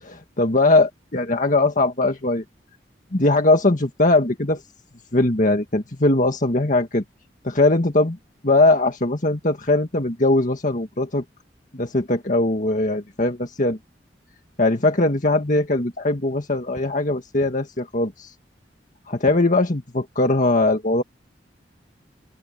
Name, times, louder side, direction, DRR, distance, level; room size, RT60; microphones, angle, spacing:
voice 1, 0.0-2.4 3.1-4.6 5.1-7.0 7.4-8.2 8.4-11.2 11.7-13.8 14.6-18.3 19.1-21.0, left 2 dB, 45° left, 1.8 m, -20 dB
open air
head